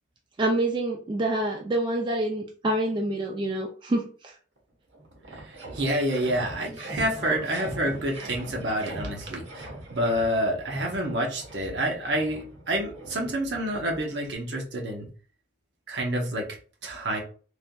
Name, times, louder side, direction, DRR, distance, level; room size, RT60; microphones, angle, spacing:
voice 1, 0.4-4.3 7.2-7.3, right 1 dB, 25° right, 1 dB, 0.3 m, -27 dB
sound 1, 4.6-4.7 4.9-14.3, right 1 dB, 85° right, 1.0 m, -41 dB
voice 2, 5.3-15.1 15.9-16.5 16.8-17.2, right 1 dB, 65° right, 0 dB, 0.8 m, -28 dB
3.3 x 2.5 x 2.2 m, 0.40 s
head